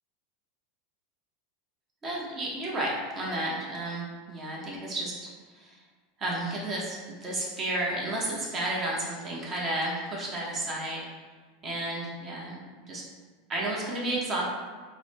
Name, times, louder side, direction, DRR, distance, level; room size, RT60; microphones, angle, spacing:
voice 1, 2.0-5.8 6.2-11.0 11.6-12.6 12.9-13.0 13.5-14.4, right 1 dB, 30° right, -4 dB, 0.8 m, -32 dB
3.8 x 2.1 x 3.3 m, 1.5 s
supercardioid pair, 135°, 0 cm